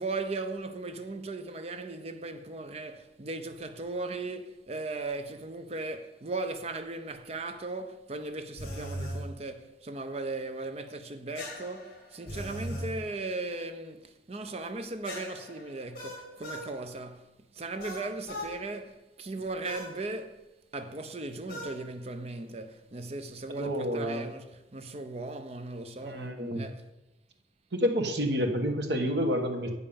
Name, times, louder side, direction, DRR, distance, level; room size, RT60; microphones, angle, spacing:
voice 1, 0.0-20.5 20.7-26.9, right 3 dB, 35° right, 0.6 m, -37 dB
sound 1, 8.6-9.2 11.4-12.9 15.0-16.7 17.8-18.5 19.6-19.9 21.5-21.8, equal, 55° left, 2.4 m, -38 dB
voice 2, 23.5-24.3 26.0-26.7 27.7-29.7, equal, 70° right, 1.2 m, -29 dB
8.1 x 5.4 x 6.9 m
head